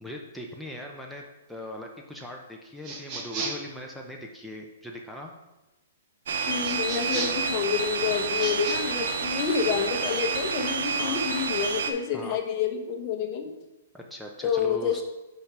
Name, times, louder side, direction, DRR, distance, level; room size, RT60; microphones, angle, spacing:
voice 1, 0.0-5.3 11.0-11.2 12.1-12.4 13.9-15.0, left 1 dB, ahead, 0 dB, 0.7 m, -40 dB
sound 1, 2.8-3.7 6.6-7.5 8.3-8.8, right 3 dB, 30° right, 1.2 m, -34 dB
sound 2, 6.3-11.9, right 5 dB, 70° right, 0.8 m, -29 dB
voice 2, 6.5-13.5 14.4-15.0, left 7 dB, 35° left, 4 dB, 1.0 m, -28 dB
5.2 x 5.1 x 6.0 m, 1.0 s
hypercardioid pair, 145°, 0 cm